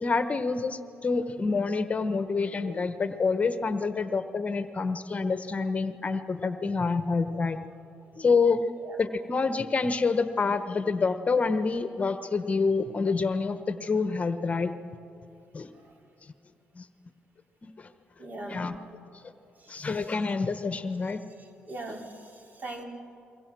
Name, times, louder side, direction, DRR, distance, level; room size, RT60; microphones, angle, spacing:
voice 1, 0.0-7.6 8.2-8.7 9.0-14.7 15.5-15.7 16.8-16.9 17.6-17.9 18.5-18.8 19.7-21.2, left 4 dB, 35° left, 10 dB, 1.1 m, -27 dB
voice 2, 18.2-18.7 19.6-20.0 21.7-22.8, right 2 dB, 45° right, 1 dB, 3.9 m, -40 dB
28.0 x 23.0 x 6.2 m, 2.7 s
cardioid pair, 75°, 4 cm